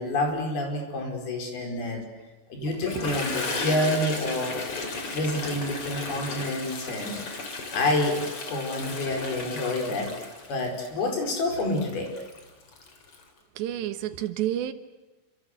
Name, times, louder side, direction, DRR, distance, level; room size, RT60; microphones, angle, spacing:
voice 1, 0.0-2.1 2.5-4.6 5.1-7.2 7.7-8.2 8.5-10.1 10.5-12.1, left 1 dB, 65° left, 6.7 m, -28 dB
voice 2, 2.6-3.0 13.6-14.7, right 12 dB, 90° right, 3.6 m, -30 dB
Toilet flush, 2.7-13.2, left 3 dB, 35° left, 3.9 m, -35 dB
27.0 x 26.5 x 8.0 m
omnidirectional pair, 4.8 m